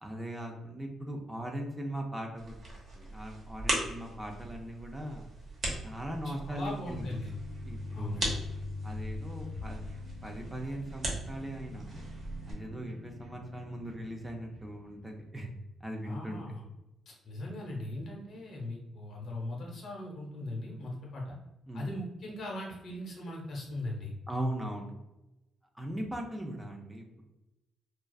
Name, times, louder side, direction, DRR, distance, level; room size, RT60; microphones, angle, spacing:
voice 1, 0.0-2.6 2.9-5.3 5.8-7.2 7.6-8.2 8.8-9.8 10.2-12.0 12.5-15.5 15.8-16.4 21.7-21.9 24.3-24.9 25.7-27.2, right 1 dB, 15° right, 1 dB, 0.4 m, -39 dB
sound 1, 2.4-12.5, right 1 dB, 45° right, 0.8 m, -39 dB
voice 2, 6.2-7.3 7.9-8.3 16.0-16.6 17.1-21.3 21.7-24.1, left 1 dB, 60° left, -2 dB, 0.8 m, -39 dB
sound 2, 6.9-15.2, left 2 dB, 85° right, 0.5 m, -44 dB
2.3 x 2.3 x 2.3 m, 0.96 s
cardioid pair, 90°, 0 cm